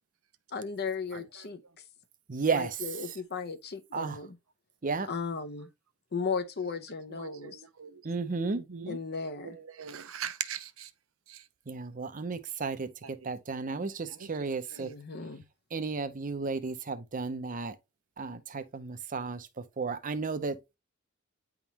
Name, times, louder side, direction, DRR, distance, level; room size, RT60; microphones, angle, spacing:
voice 1, 0.5-1.6 2.5-4.4 5.1-5.7 6.1-7.6 8.9-9.6 14.8-15.4, left 5 dB, 50° left, 0.8 m, -36 dB
voice 2, 2.3-2.7 3.9-4.2 4.8-5.1 8.0-8.6 11.7-14.9 15.7-17.7 18.2-19.5 19.8-20.8, right 4 dB, 40° right, 0.6 m, -33 dB
voice 3, 7.2-8.0 8.6-9.0 9.8-10.9 11.3-11.4 13.0-13.1 14.1-14.3, right 8 dB, 80° right, 0.8 m, -40 dB
9.4 x 3.6 x 2.9 m
head